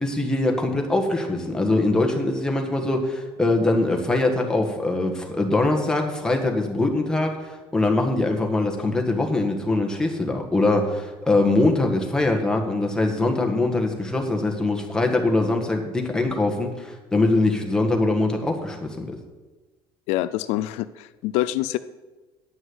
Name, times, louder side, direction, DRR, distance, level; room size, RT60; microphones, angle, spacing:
voice 1, 0.0-19.2, left 2 dB, 5° left, 2 dB, 1.4 m, -22 dB
voice 2, 20.1-21.8, left 15 dB, 80° left, 14 dB, 0.4 m, -25 dB
9.5 x 6.1 x 7.8 m, 1.2 s
cardioid pair, 150°, 11 cm